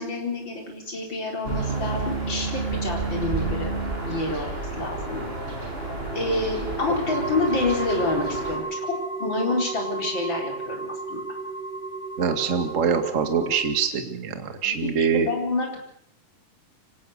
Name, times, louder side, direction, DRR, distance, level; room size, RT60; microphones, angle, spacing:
voice 1, 0.0-5.3 6.1-11.2 14.6-15.8, left 2 dB, 30° left, 1 dB, 4.9 m, -28 dB
sound 1, 1.4-8.6, right 3 dB, 15° right, 5.7 m, -30 dB
sound 2, 7.1-13.6, right 3 dB, 55° right, 5.7 m, -33 dB
voice 2, 12.2-15.3, right 6 dB, 30° right, 6 dB, 1.5 m, -24 dB
25.5 x 17.5 x 6.7 m, 0.71 s
omnidirectional pair, 4.1 m